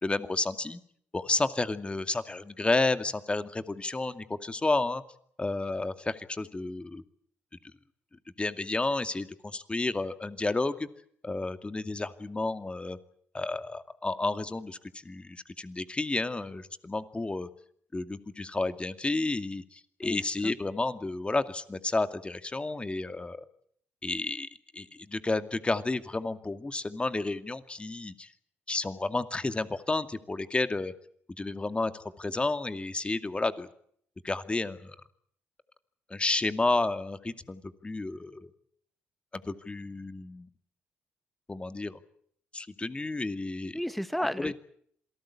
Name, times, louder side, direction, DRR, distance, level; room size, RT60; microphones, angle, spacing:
voice 1, 0.0-0.8 1.1-5.0 5.4-7.0 8.4-10.9 11.2-13.0 13.3-17.5 17.9-23.4 24.0-24.5 24.7-28.3 28.7-30.9 31.4-33.7 34.2-35.0 36.1-38.5 39.4-40.5 41.5-42.0 42.5-43.8 44.4-44.5, left 2 dB, 25° left, 10 dB, 2.3 m, -31 dB
voice 2, 20.0-20.5 43.7-44.5, equal, ahead, 12 dB, 2.0 m, -33 dB
27.5 x 18.5 x 8.7 m, 0.66 s
hypercardioid pair, 55°, 5 cm